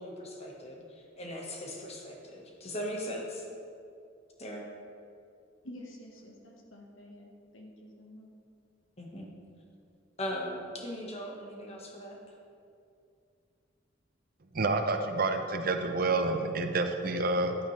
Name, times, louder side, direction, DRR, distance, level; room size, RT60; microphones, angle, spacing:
voice 1, 0.0-3.4 4.4-4.7 9.0-9.3 10.2-12.2, equal, 35° left, -1 dB, 1.3 m, -39 dB
voice 2, 5.6-8.4, left 1 dB, 85° left, 0 dB, 1.3 m, -49 dB
voice 3, 14.5-17.6, right 3 dB, 50° right, 6 dB, 0.6 m, -28 dB
10.5 x 8.7 x 3.2 m, 2.6 s
head